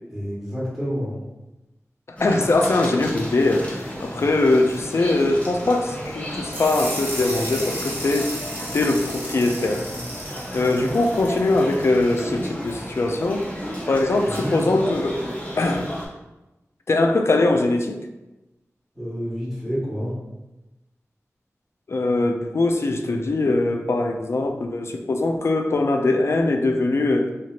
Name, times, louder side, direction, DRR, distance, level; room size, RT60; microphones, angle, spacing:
voice 1, 0.1-1.1 14.3-14.6 18.9-20.1, equal, 5° right, -8 dB, 1.4 m, -28 dB
voice 2, 2.2-8.4 8.7-9.8 10.5-13.5 13.9-15.2 15.6-15.9 16.9-18.0 21.9-27.3, left 2 dB, 55° left, 4 dB, 0.3 m, -21 dB
sound 1, 2.2-16.1, equal, 25° left, 0.9 m, -33 dB
sound 2, 6.5-12.3, equal, 35° right, 1.1 m, -34 dB
3.1 x 2.7 x 2.4 m, 1.0 s
wide cardioid pair, 70°, 5 cm